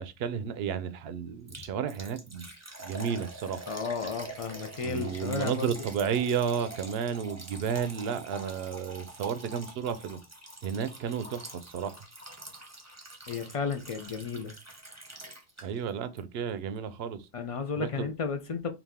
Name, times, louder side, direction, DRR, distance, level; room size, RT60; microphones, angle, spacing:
voice 1, 0.0-2.5 2.8-3.7 4.8-10.2 10.6-12.0 15.6-17.3 17.8-18.1, right 7 dB, 65° right, 0.7 m, -32 dB
Liquid, 1.5-15.9 16.2-16.3 16.8-16.9, right 2 dB, 15° right, 0.7 m, -45 dB
voice 2, 3.7-5.7 13.3-14.5 17.3-18.7, left 5 dB, 60° left, 0.3 m, -33 dB
4.0 x 2.4 x 3.5 m
omnidirectional pair, 1.2 m